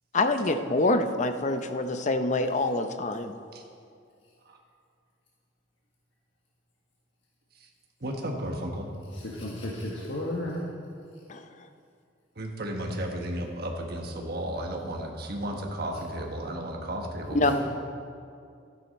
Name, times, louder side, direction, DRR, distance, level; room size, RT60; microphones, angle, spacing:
voice 1, 0.1-3.3 11.3-11.7 17.3-17.5, left 2 dB, 40° left, 8 dB, 0.6 m, -26 dB
voice 2, 8.0-8.9 12.4-17.5, right 1 dB, 55° right, 2 dB, 1.3 m, -33 dB
voice 3, 9.1-10.6 17.5-17.6, left 1 dB, 75° left, -4 dB, 1.4 m, -33 dB
12.5 x 10.5 x 4.2 m, 2.3 s
head